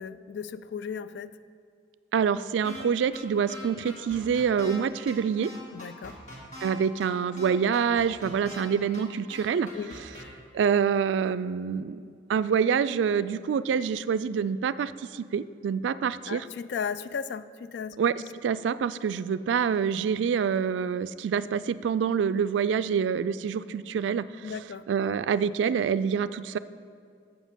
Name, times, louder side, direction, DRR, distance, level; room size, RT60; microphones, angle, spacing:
voice 1, 0.0-1.4 5.7-6.2 9.7-10.0 16.3-18.0 24.4-24.8, left 6 dB, 70° left, 14 dB, 0.3 m, -35 dB
voice 2, 2.1-5.5 6.6-9.7 10.5-12.0 12.3-16.4 18.0-18.1 18.4-24.3 24.9-26.6, right 7 dB, 90° right, 14 dB, 0.3 m, -26 dB
sound 1, 2.6-2.8 3.1-3.2 3.5-4.8 5.1-5.2 5.4-6.7 7.0-7.1 7.4-8.6 8.9-9.0 9.3-10.2, equal, 45° left, 2.0 m, -42 dB
7.2 x 5.9 x 7.3 m, 2.3 s
head